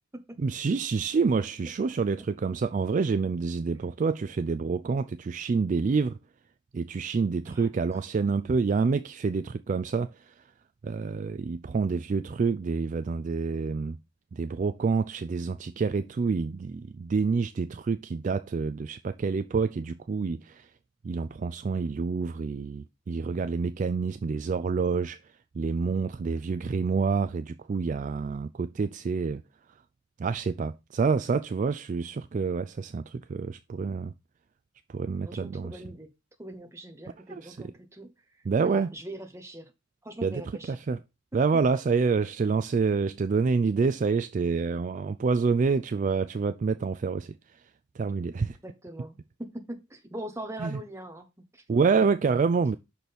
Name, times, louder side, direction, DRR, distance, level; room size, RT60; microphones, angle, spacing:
voice 1, 0.4-6.2 6.7-10.4 10.8-14.0 14.3-20.7 21.0-25.2 25.5-29.4 30.2-34.1 34.9-35.8 37.3-37.7 38.5-38.9 40.2-41.0 41.3-47.6 48.0-48.6 50.6-50.8 51.7-52.8, right 4 dB, 40° right, 0.3 m, -27 dB
voice 2, 35.3-36.1 36.4-38.1 38.6-39.7 40.0-40.8 41.3-41.6 45.0-45.1 48.3-51.6, right 1 dB, 15° right, 1.1 m, -42 dB
6.2 x 4.2 x 5.1 m
head